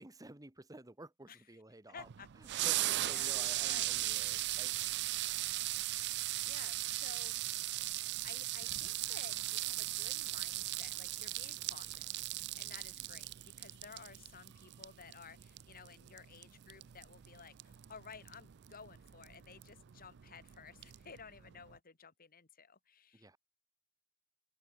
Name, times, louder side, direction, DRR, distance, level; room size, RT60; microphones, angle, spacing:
voice 1, 0.0-2.1 2.4-4.8 13.0-13.1 23.1-23.4, right 2 dB, 15° right, 1.3 m, -53 dB
voice 2, 1.9-2.3 3.0-3.4 3.6-3.9 4.2-4.3 6.1-7.7 8.2-23.4, left 6 dB, 40° left, 1.6 m, -55 dB
sound 1, 2.0-21.8, right 16 dB, 50° right, 0.4 m, -38 dB
open air
head